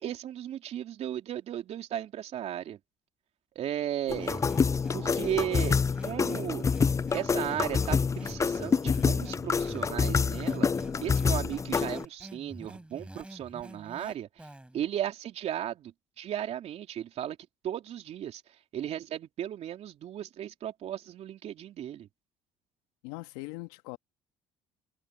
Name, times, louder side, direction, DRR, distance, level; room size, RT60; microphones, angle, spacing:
voice 1, 0.0-2.8 3.5-4.4 4.9-6.7 7.1-10.7 11.0-14.5 14.7-17.4 17.6-18.4 18.7-22.1, right 11 dB, 60° right, 3.3 m, -35 dB
sound 1, 4.1-12.0, left 5 dB, 25° left, 0.4 m, -27 dB
sound 2, 4.2-14.8, right 1 dB, 10° right, 4.6 m, -46 dB
voice 2, 23.0-24.0, left 21 dB, 85° left, 1.7 m, -41 dB
hypercardioid pair, 60°, 12 cm